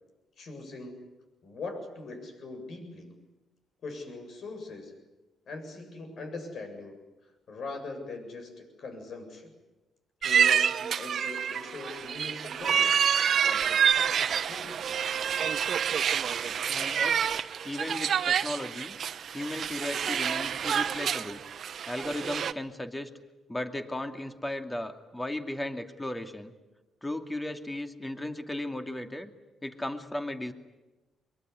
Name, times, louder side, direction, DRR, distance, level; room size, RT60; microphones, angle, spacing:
voice 1, 0.4-1.1 1.4-3.2 3.8-5.0 5.5-9.5 10.2-13.0 13.4-14.8, left 3 dB, 60° left, 5 dB, 7.7 m, -41 dB
sound 1, 10.2-22.5, right 8 dB, 60° right, 1.2 m, -28 dB
voice 2, 16.7-17.2 17.6-19.0 19.3-21.4 21.9-23.1 23.5-26.5 27.0-29.3 29.6-30.5, left 1 dB, 10° left, 7 dB, 2.5 m, -35 dB
23.5 x 23.0 x 9.8 m, 1.1 s
cardioid pair, 90°, 0 cm